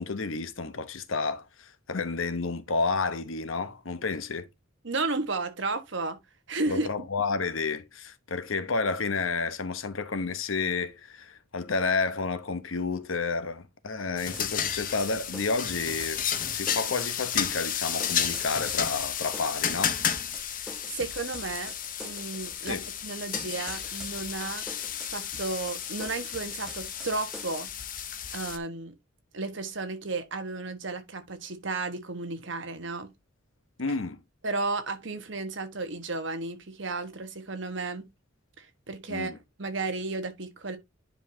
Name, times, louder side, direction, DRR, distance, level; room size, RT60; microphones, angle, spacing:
voice 1, 0.0-4.5 6.7-16.2 16.5-20.0 22.7-22.8 33.8-34.2 39.1-39.4, left 4 dB, 75° left, 0.9 m, -30 dB
voice 2, 4.8-6.2 6.5-6.9 20.4-21.7 22.0-24.6 25.1-27.7 28.3-28.9 29.3-33.1 34.4-38.1 38.6-39.3 39.6-40.8, right 3 dB, 60° right, 1.3 m, -33 dB
sound 1, 14.2-28.6, left 9 dB, 40° left, 0.8 m, -32 dB
sound 2, 14.2-27.6, equal, 5° right, 0.9 m, -46 dB
10.0 x 5.3 x 2.7 m
head